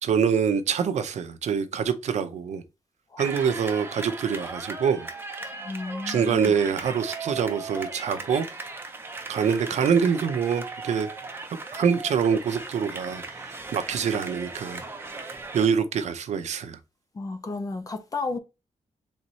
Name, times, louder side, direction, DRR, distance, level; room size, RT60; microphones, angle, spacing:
voice 1, 0.0-2.6 3.2-5.1 6.1-8.5 9.3-11.1 11.7-15.1 15.5-16.8, right 7 dB, 75° right, 0.6 m, -25 dB
sound 1, 3.2-15.7, right 3 dB, 20° right, 0.6 m, -38 dB
voice 2, 5.5-6.6 17.1-18.4, left 3 dB, 30° left, 0.5 m, -33 dB
4.1 x 3.5 x 3.1 m
wide cardioid pair, 170°, 12 cm